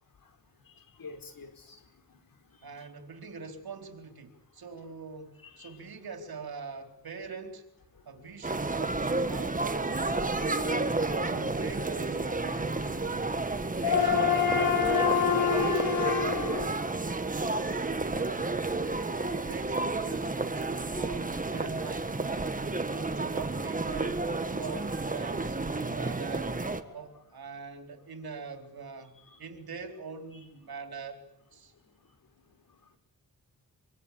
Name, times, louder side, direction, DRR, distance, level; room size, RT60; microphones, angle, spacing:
voice 1, 1.0-1.8 2.7-2.9 5.6-5.7 10.1-11.8 13.7-16.8 18.8-19.4 26.1-26.2 26.9-27.0 29.3-29.4, left 7 dB, 70° left, 6 dB, 4.9 m, -30 dB
voice 2, 2.6-7.6 8.1-10.9 11.2-13.5 13.8-14.7 18.2-18.5 19.1-22.2 22.9-26.6 26.9-29.1 29.4-31.2 31.5-31.7, right 5 dB, 90° right, 5 dB, 4.2 m, -43 dB
sound 1, 8.4-26.8, right 3 dB, 20° right, 1.6 m, -31 dB
25.5 x 25.0 x 8.5 m, 0.80 s
wide cardioid pair, 150°, 36 cm